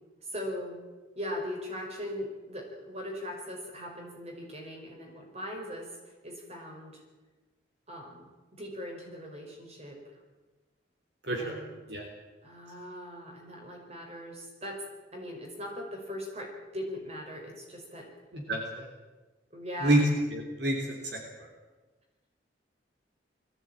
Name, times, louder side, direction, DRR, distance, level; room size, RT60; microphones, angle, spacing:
voice 1, 0.2-0.8 1.1-5.9 6.2-7.0 7.9-10.0 11.3-11.8 12.4-14.8 15.1-18.1 19.5-20.0, equal, 35° right, 1 dB, 5.2 m, -40 dB
voice 2, 11.2-11.6 11.9-12.0 18.3-18.9 19.8-20.0 20.3-21.5, right 1 dB, 65° right, 1 dB, 3.5 m, -28 dB
20.5 x 15.5 x 9.0 m, 1.2 s
head